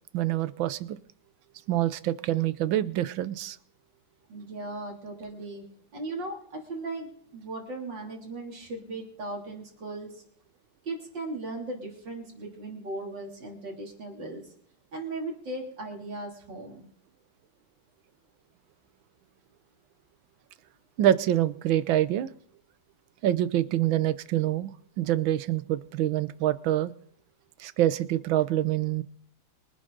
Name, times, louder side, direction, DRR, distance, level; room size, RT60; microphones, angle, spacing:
voice 1, 0.1-1.0 1.7-3.6 21.0-22.3 23.2-26.9 27.6-29.0, right 13 dB, 90° right, 16 dB, 1.5 m, -26 dB
voice 2, 4.3-5.6 5.9-10.2 10.9-14.4 14.9-16.9, right 2 dB, 70° right, 1 dB, 3.8 m, -37 dB
24.0 x 10.5 x 3.9 m, 0.62 s
omnidirectional pair, 2.1 m